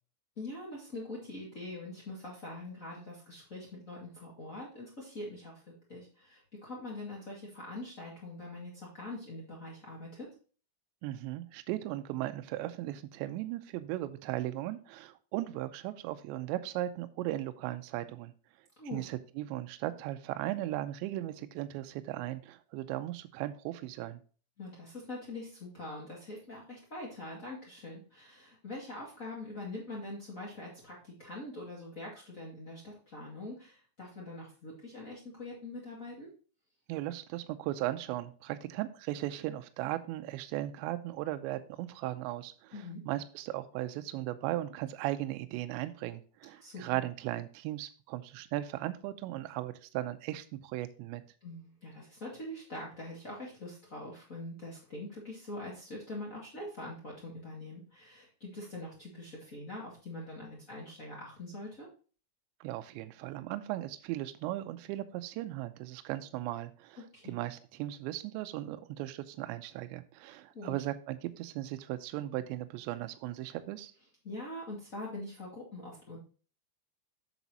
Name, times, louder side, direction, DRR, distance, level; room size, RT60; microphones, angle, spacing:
voice 1, 0.4-10.3 18.8-19.0 24.6-36.3 42.7-43.0 46.6-47.0 51.4-61.9 67.1-67.4 70.2-70.7 74.2-76.2, left 2 dB, 50° left, -4 dB, 0.9 m, -43 dB
voice 2, 11.0-18.3 18.9-24.2 36.9-51.2 62.6-73.9, right 15 dB, 85° right, 9 dB, 2.8 m, -37 dB
8.0 x 7.1 x 2.9 m, 0.38 s
omnidirectional pair, 5.3 m